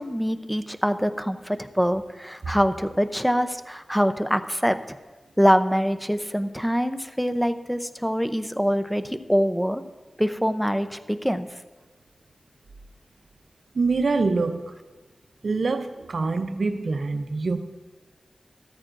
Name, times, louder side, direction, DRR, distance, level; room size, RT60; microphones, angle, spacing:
voice 1, 0.0-4.8 5.4-9.8 10.2-11.5, equal, ahead, 0.6 m, -24 dB
voice 2, 13.7-14.7 15.4-17.6, right 3 dB, 70° right, 0.6 m, -25 dB
14.5 x 13.5 x 2.6 m
wide cardioid pair, 65°, 0 cm